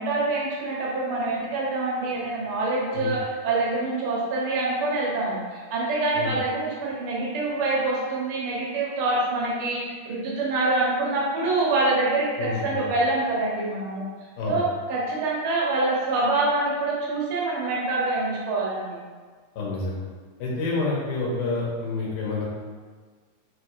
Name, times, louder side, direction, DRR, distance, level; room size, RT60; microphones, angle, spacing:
voice 1, 0.0-14.0 14.5-19.0, right 2 dB, 85° right, -5 dB, 1.2 m, -25 dB
voice 2, 12.3-12.9 14.4-14.6 19.6-20.0 20.4-22.5, left 3 dB, 80° left, -5 dB, 2.6 m, -28 dB
7.2 x 3.0 x 2.4 m, 1.5 s
omnidirectional pair, 3.7 m